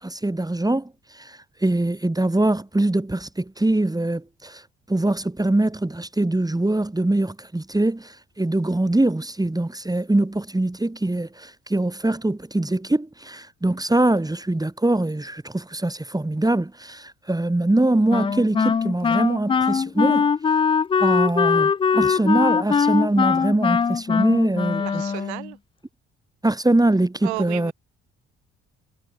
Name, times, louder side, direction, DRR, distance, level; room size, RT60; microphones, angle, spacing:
voice 1, 0.0-4.6 4.9-20.3 21.0-25.0 26.4-27.7, right 2 dB, 10° right, 2.8 m, -23 dB
Wind instrument woodwind instrument, 18.1-25.5, left 6 dB, 15° left, 0.4 m, -21 dB
voice 2, 24.8-25.6 27.2-27.7, right 23 dB, 75° right, 3.7 m, -33 dB
figure-of-eight pair, 45°, 33 cm